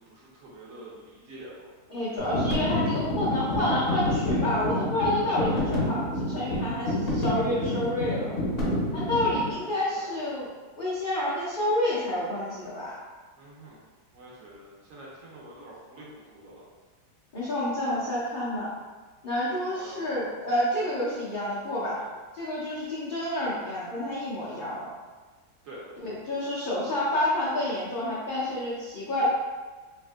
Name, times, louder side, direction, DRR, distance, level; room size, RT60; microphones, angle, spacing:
voice 1, 0.0-2.2 5.3-5.6 9.4-10.1 13.4-13.8 14.1-16.6 19.7-20.0 25.6-25.8, right 1 dB, 65° right, -5 dB, 0.9 m, -47 dB
voice 2, 1.9-8.4 8.9-10.5 10.8-12.9 17.3-18.7 19.2-22.0 22.3-24.9 26.0-29.2, left 1 dB, 75° left, -9 dB, 0.4 m, -29 dB
sound 1, 2.2-9.5, left 1 dB, 50° left, 0.7 m, -28 dB
3.5 x 2.5 x 2.3 m, 1.3 s
omnidirectional pair, 1.8 m